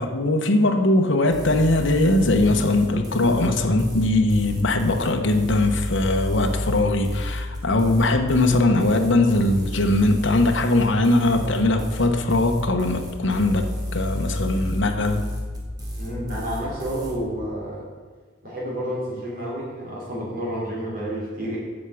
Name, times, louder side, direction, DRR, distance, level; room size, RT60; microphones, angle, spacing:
voice 1, 0.0-15.3, left 2 dB, 65° left, 5 dB, 1.0 m, -20 dB
sound 1, 1.3-17.1, left 1 dB, 20° right, 1.7 m, -32 dB
voice 2, 16.0-17.9 18.4-21.6, equal, 40° right, -5 dB, 3.7 m, -30 dB
8.1 x 7.2 x 7.0 m, 1.5 s
head